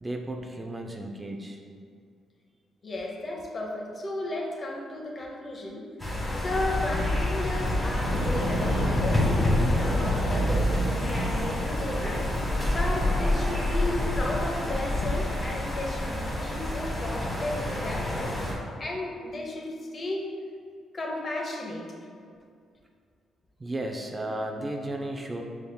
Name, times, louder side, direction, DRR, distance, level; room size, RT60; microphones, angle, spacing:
voice 1, 0.0-1.6 23.6-25.4, right 1 dB, 20° right, 2 dB, 0.4 m, -34 dB
voice 2, 2.8-18.3 18.6-20.3 20.9-21.9, left 2 dB, 40° left, 0 dB, 0.7 m, -34 dB
sound 1, 6.0-18.5, left 1 dB, 15° left, 1.2 m, -27 dB
sound 2, 7.4-13.0, equal, 75° left, 1.0 m, -32 dB
5.3 x 3.4 x 2.2 m, 2.2 s
cardioid pair, 85°, 0 cm